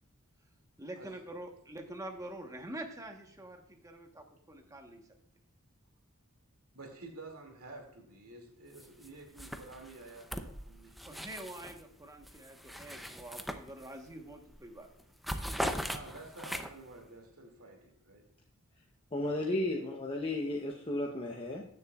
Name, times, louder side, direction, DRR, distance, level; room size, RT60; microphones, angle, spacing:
voice 1, 0.8-5.0 11.0-14.9, right 1 dB, 15° right, 3 dB, 1.1 m, -46 dB
voice 2, 6.7-11.1 15.8-18.3 19.2-19.8, right 2 dB, 75° right, 3 dB, 2.4 m, -50 dB
sound 1, 8.8-9.1 9.4-11.8 12.2-14.1 14.5-14.7 15.0-16.9, equal, ahead, 0.5 m, -40 dB
voice 3, 19.1-21.6, left 1 dB, 25° left, 0 dB, 0.8 m, -34 dB
16.5 x 6.8 x 2.4 m, 0.68 s
head